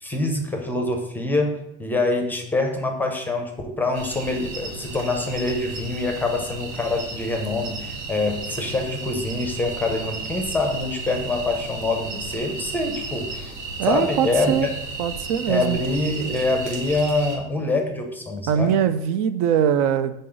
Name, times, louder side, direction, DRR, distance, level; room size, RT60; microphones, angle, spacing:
voice 1, 0.0-13.5 13.8-14.7 15.5-18.8, left 2 dB, 5° left, 3 dB, 0.5 m, -25 dB
sound 1, 3.9-17.4, right 3 dB, 90° right, 1.6 m, -34 dB
voice 2, 13.8-14.7 15.0-15.8 18.5-20.1, right 9 dB, 70° right, 11 dB, 0.5 m, -21 dB
6.4 x 3.9 x 3.9 m, 0.88 s
cardioid pair, 155°, 30 cm